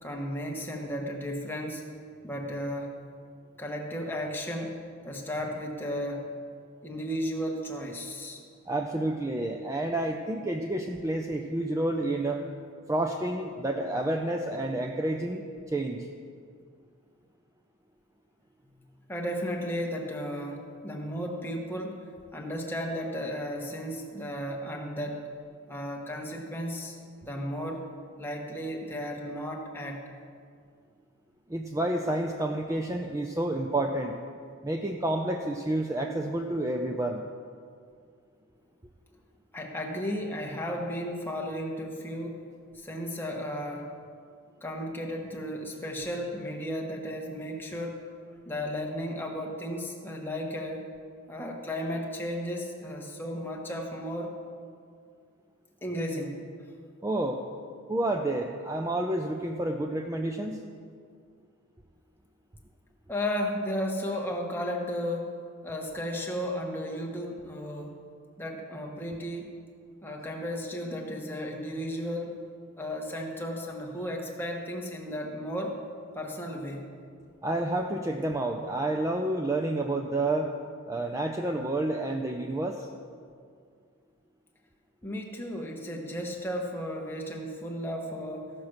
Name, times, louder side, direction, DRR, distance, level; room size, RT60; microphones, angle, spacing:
voice 1, 0.0-1.8 2.2-2.9 3.6-6.3 6.8-8.4 19.1-22.0 22.3-25.3 25.7-27.0 27.2-27.8 28.2-30.0 39.5-42.4 42.7-43.9 44.6-48.1 48.5-50.8 51.3-54.3 55.8-56.4 63.1-65.3 65.6-68.0 68.4-69.5 70.0-72.4 72.8-75.8 76.1-76.9 85.0-88.5, equal, 10° left, 0 dB, 1.1 m, -34 dB
voice 2, 8.7-12.4 12.9-16.1 31.5-34.2 34.6-37.3 57.0-57.4 57.9-60.6 77.4-80.5 80.9-82.9, right 1 dB, 15° right, 2 dB, 0.4 m, -29 dB
15.0 x 6.0 x 6.5 m, 2.2 s
head